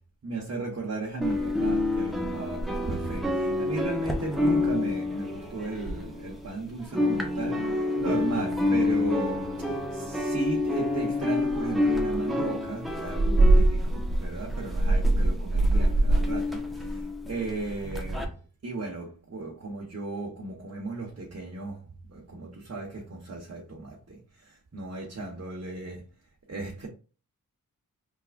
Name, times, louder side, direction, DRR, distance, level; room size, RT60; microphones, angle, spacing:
voice 1, 0.2-18.4 18.6-21.8 22.1-26.1 26.5-26.9, right 3 dB, 45° right, 1.2 m, -36 dB
sound 1, 1.2-6.5 6.8-18.2, equal, ahead, 1.2 m, -26 dB
4.6 x 3.4 x 2.5 m
cardioid pair, 50°, 35 cm